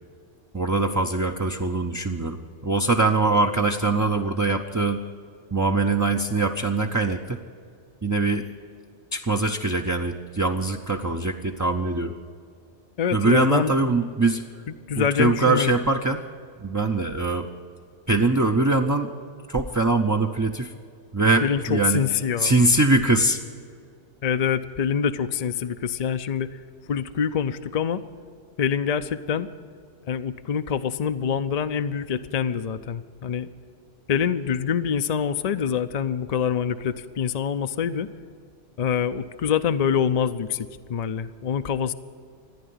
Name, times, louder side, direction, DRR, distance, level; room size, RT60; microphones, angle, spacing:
voice 1, 0.5-2.4 2.6-5.0 5.5-7.4 8.0-8.5 9.1-12.1 13.1-14.4 15.0-16.2 16.6-17.5 18.1-19.1 19.5-20.7 21.1-23.4, right 2 dB, 20° right, 3 dB, 0.5 m, -22 dB
voice 2, 13.0-13.7 14.9-15.8 21.4-22.5 24.2-26.6 26.9-28.0 28.6-29.5 30.1-33.5 34.1-38.1 38.8-41.9, left 7 dB, 50° left, 10 dB, 0.5 m, -25 dB
14.5 x 10.0 x 9.5 m, 2.2 s
omnidirectional pair, 1.2 m